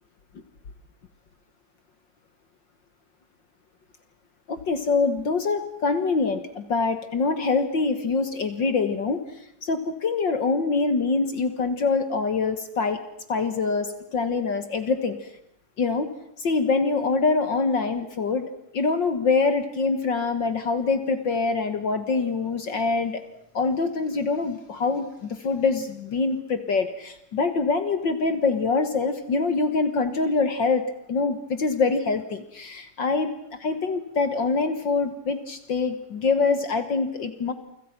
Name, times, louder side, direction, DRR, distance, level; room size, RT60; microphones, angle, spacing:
voice 1, 4.5-9.2 9.6-13.0 13.3-15.2 15.8-16.1 16.4-23.2 23.5-33.3 33.6-37.5, left 4 dB, 50° left, 10 dB, 1.5 m, -24 dB
29.0 x 25.5 x 5.9 m, 0.75 s
omnidirectional pair, 3.7 m